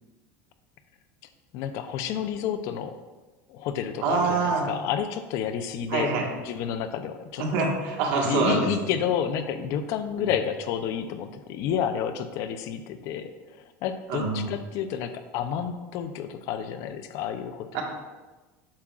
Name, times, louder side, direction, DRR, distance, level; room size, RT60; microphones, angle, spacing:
voice 1, 1.5-2.9 3.5-7.4 8.3-13.3 13.8-17.8, left 8 dB, 55° left, 9 dB, 0.6 m, -30 dB
voice 2, 4.0-4.7 5.9-6.3 7.4-8.9 10.2-10.3 14.1-14.4 17.7-17.8, right 4 dB, 70° right, 0 dB, 1.6 m, -25 dB
8.6 x 7.2 x 2.4 m, 1.2 s
cardioid pair, 150°, 7 cm